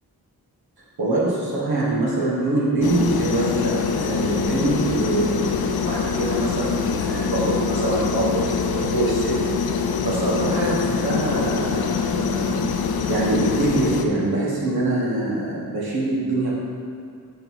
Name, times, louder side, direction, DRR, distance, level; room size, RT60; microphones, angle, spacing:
voice 1, 1.0-9.6 10.0-12.7 13.1-16.5, right 2 dB, 70° right, -6 dB, 1.2 m, -24 dB
sound 1, 2.8-14.0, left 6 dB, 70° left, 0.5 m, -24 dB
4.4 x 3.9 x 5.4 m, 2.2 s
wide cardioid pair, 85°, 38 cm